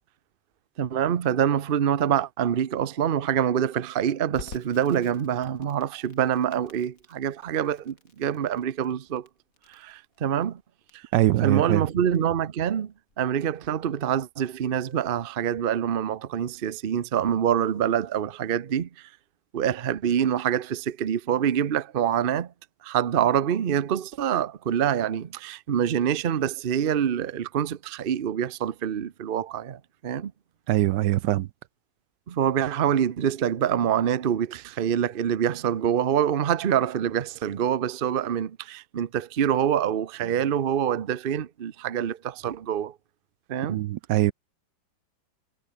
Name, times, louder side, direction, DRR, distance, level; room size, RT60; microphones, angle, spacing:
voice 1, 0.8-9.3 9.7-10.6 10.9-11.0 11.4-19.1 19.5-22.5 22.8-30.3 32.3-42.9 43.5-43.8, right 9 dB, 45° right, 0.7 m, -26 dB
Crackle, 4.3-15.1, left 4 dB, 50° left, 3.3 m, -50 dB
voice 2, 11.1-11.8 30.7-31.5 43.7-44.3, right 15 dB, 75° right, 1.2 m, -22 dB
omnidirectional pair, 2.0 m